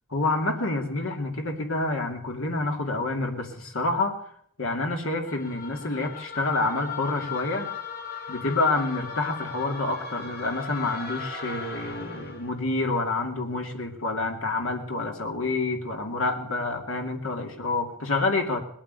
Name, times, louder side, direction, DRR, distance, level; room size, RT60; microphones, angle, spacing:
voice 1, 0.1-4.2 4.6-7.7 8.3-18.6, left 2 dB, 80° left, 3 dB, 2.5 m, -28 dB
sound 1, 5.3-12.5, left 5 dB, 45° left, 2.1 m, -37 dB
20.0 x 8.8 x 8.2 m, 0.66 s
head